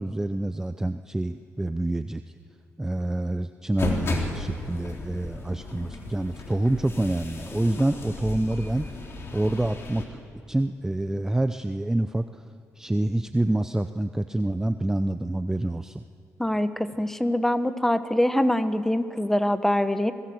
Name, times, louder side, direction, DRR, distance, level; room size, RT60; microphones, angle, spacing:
voice 1, 0.0-2.2 2.8-9.0 9.3-10.2 10.5-12.4 12.8-16.0, right 1 dB, 10° right, 10 dB, 0.6 m, -27 dB
sound 1, 3.8-10.1, left 3 dB, 50° left, 3.9 m, -35 dB
voice 2, 16.4-20.1, left 1 dB, 5° left, 11 dB, 1.2 m, -24 dB
27.0 x 19.5 x 8.0 m, 2.4 s
cardioid pair, 110°, 6 cm